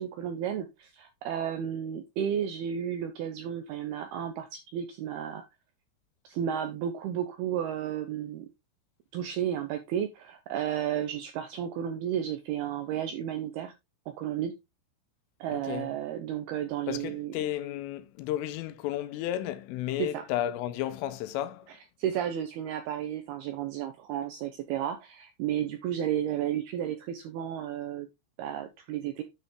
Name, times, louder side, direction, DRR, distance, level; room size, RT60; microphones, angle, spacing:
voice 1, 0.0-5.4 6.2-8.5 9.1-13.7 14.1-14.5 15.4-17.3 20.0-20.2 21.7-28.1 28.4-29.2, right 10 dB, 80° right, 2.3 m, -33 dB
voice 2, 15.5-15.9 16.9-21.7, left 12 dB, 90° left, 3.5 m, -33 dB
9.6 x 5.7 x 3.7 m
omnidirectional pair, 5.6 m